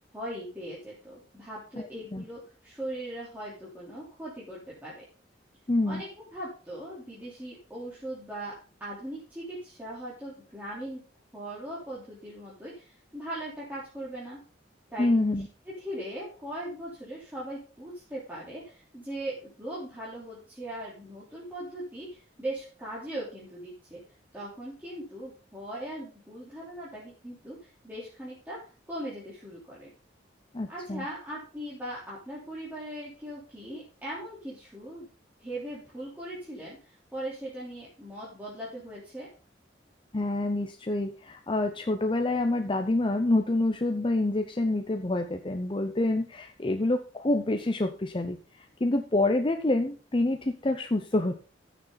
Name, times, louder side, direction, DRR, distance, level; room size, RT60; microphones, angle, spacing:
voice 1, 0.1-5.0 5.9-8.5 8.8-11.0 11.3-14.4 14.9-15.1 15.8-24.0 24.3-28.6 28.9-29.9 30.7-35.1 35.4-39.3, right 1 dB, 10° right, -8 dB, 3.5 m, -39 dB
voice 2, 1.8-2.2 5.7-6.0 15.0-15.5 30.5-31.1 40.1-51.3, left 2 dB, 30° left, 5 dB, 0.7 m, -27 dB
14.5 x 6.9 x 4.0 m, 0.37 s
head